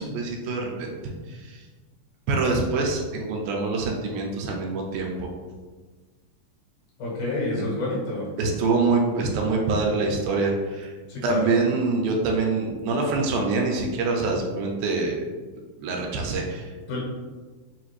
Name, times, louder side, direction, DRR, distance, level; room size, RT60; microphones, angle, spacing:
voice 1, 0.0-1.6 2.3-5.3 7.6-7.7 8.4-10.9 11.2-15.2 15.8-16.8, right 3 dB, 85° right, 0 dB, 2.1 m, -25 dB
voice 2, 7.0-8.3 11.1-11.5 16.9-17.0, left 2 dB, 75° left, -4 dB, 2.7 m, -28 dB
5.6 x 2.5 x 3.0 m, 1.4 s
omnidirectional pair, 3.7 m